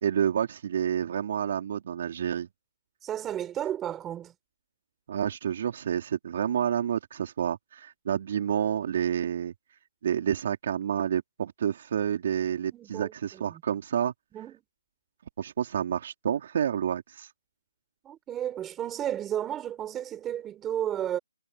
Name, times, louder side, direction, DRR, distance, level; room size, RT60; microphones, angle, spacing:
voice 1, 0.0-2.5 5.1-9.5 10.0-14.1 15.4-17.3, right 9 dB, 40° right, 3.2 m, -29 dB
voice 2, 3.0-4.3 12.7-13.6 14.3-14.6 18.0-21.2, right 10 dB, 10° right, 4.5 m, -33 dB
hypercardioid pair, 165°, 0 cm